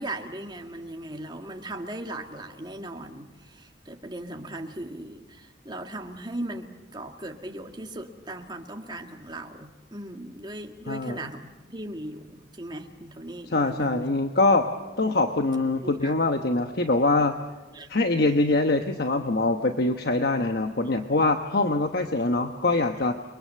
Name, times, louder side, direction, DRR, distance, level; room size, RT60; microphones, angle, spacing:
voice 1, 0.0-14.1 14.5-14.7 15.8-16.1 17.7-17.9, right 1 dB, 25° right, 3 dB, 2.0 m, -38 dB
voice 2, 10.9-11.2 13.5-14.7 15.0-17.4 17.9-23.2, left 2 dB, 55° left, 6 dB, 1.1 m, -23 dB
29.5 x 23.0 x 7.7 m, 1.2 s
head